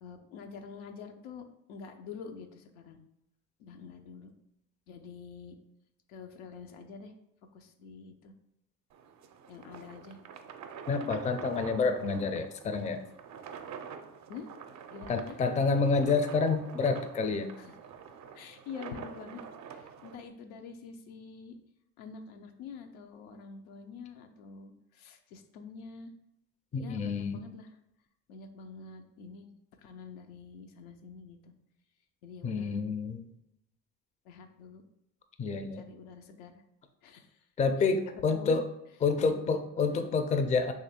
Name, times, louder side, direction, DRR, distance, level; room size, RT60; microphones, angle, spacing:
voice 1, 0.0-3.0 3.6-4.3 4.9-5.6 6.1-7.1 7.5-8.3 9.5-10.2 14.3-14.5 14.9-15.4 17.6-17.8 18.3-21.6 22.0-26.1 26.7-27.7 28.3-29.5 29.8-31.5 32.2-32.8 34.2-34.8 35.8-36.6 37.0-37.5 38.3-38.6 39.2-39.6 39.9-40.1, left 5 dB, 85° left, 5 dB, 0.5 m, -47 dB
sound 1, 8.9-20.2, right 7 dB, 50° right, 0.5 m, -47 dB
voice 2, 10.9-13.0 15.1-17.5 26.7-27.4 32.4-33.3 35.4-35.8 37.6-38.7 39.0-40.7, left 4 dB, 20° left, 8 dB, 0.4 m, -28 dB
3.0 x 2.5 x 4.2 m, 0.82 s
supercardioid pair, 70°, 37 cm